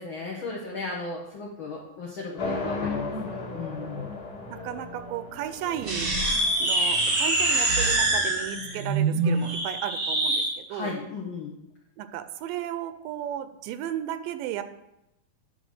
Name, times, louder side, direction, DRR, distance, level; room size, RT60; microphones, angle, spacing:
voice 1, 0.0-4.1 8.5-8.8 10.7-11.5, left 4 dB, 85° left, -2 dB, 1.1 m, -36 dB
sound 1, 2.4-8.5, left 3 dB, 40° left, 1.4 m, -35 dB
voice 2, 4.5-6.1 6.6-10.9 12.0-14.6, right 11 dB, 85° right, 10 dB, 2.2 m, -34 dB
sound 2, 5.8-10.5, right 2 dB, 50° right, 1.0 m, -24 dB
9.9 x 3.9 x 6.4 m, 0.89 s
omnidirectional pair, 4.0 m